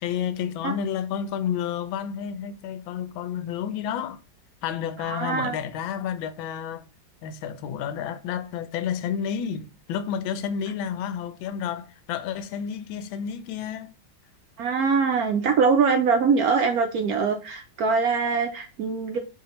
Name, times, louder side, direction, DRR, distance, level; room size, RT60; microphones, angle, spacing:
voice 1, 0.0-4.2 4.6-6.8 7.2-13.9, left 8 dB, 85° left, 1.3 m, -30 dB
voice 2, 5.0-5.6 14.6-19.2, right 5 dB, 80° right, 0.8 m, -23 dB
4.0 x 2.8 x 2.8 m
omnidirectional pair, 2.1 m